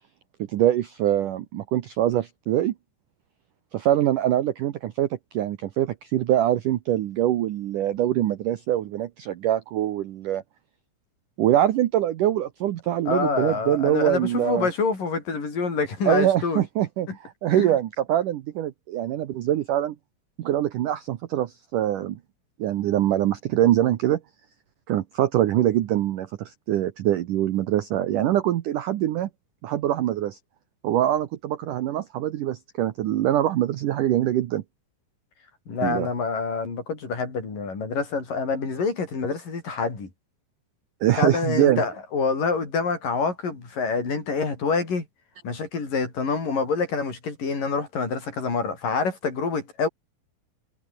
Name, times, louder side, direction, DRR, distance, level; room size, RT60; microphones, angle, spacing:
voice 1, 0.5-2.7 3.7-10.4 11.4-14.7 16.1-20.0 20.4-22.2 22.6-24.2 24.9-29.3 29.6-30.4 30.8-34.6 35.8-36.1 41.0-41.8, right 12 dB, 80° right, 1.8 m, -24 dB
voice 2, 13.1-16.6 17.1-17.2 17.5-17.8 35.7-40.1 41.2-45.1 45.4-49.9, left 4 dB, 45° left, 7.8 m, -26 dB
omnidirectional pair, 5.3 m